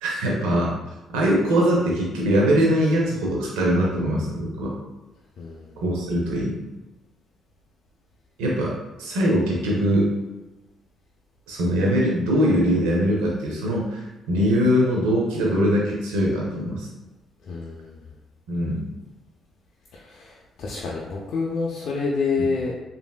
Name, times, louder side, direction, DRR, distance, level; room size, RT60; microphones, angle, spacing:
voice 1, 0.0-0.7 1.1-4.7 5.8-6.6 8.4-8.7 9.0-10.1 11.5-16.9 18.5-18.9, equal, 90° right, -3 dB, 0.5 m, -22 dB
voice 2, 5.4-5.8 17.5-18.1 19.9-22.7, left 4 dB, 70° left, -3 dB, 0.4 m, -28 dB
3.0 x 2.6 x 2.2 m, 1.1 s
supercardioid pair, 65°, 0 cm